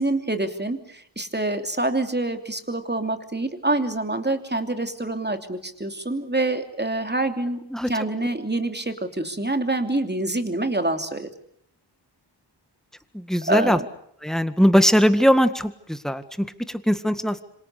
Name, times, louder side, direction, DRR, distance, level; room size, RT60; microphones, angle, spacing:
voice 1, 0.0-7.6 7.9-11.3 13.5-13.9, right 2 dB, 25° right, 6 dB, 3.0 m, -26 dB
voice 2, 13.1-13.8 14.2-17.4, equal, ahead, 10 dB, 1.8 m, -20 dB
26.5 x 26.5 x 6.8 m, 0.69 s
wide cardioid pair, 55°, 43 cm